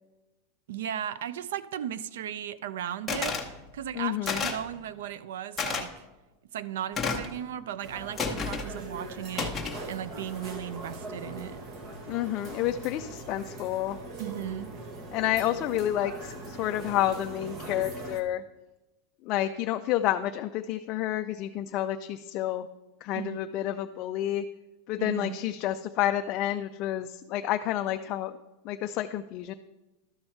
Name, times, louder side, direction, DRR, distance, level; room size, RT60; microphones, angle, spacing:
voice 1, 0.7-3.4 3.7-6.0 6.5-11.7 14.2-14.7 23.1-23.4 25.0-25.4, right 10 dB, 85° right, 17 dB, 0.4 m, -36 dB
sound 1, 3.1-3.5 4.3-4.7 5.6-5.8 7.0-7.3 8.2-8.7 9.4-9.8, left 5 dB, 5° left, 0.9 m, -30 dB
voice 2, 4.0-4.4 12.1-14.0 15.1-18.4 19.2-22.7 23.0-24.5 24.9-28.3 28.6-29.5, left 12 dB, 35° left, 7 dB, 0.3 m, -29 dB
sound 2, 7.8-18.2, right 2 dB, 30° right, 0.9 m, -41 dB
12.5 x 5.6 x 4.4 m, 1.0 s
supercardioid pair, 170°, 0 cm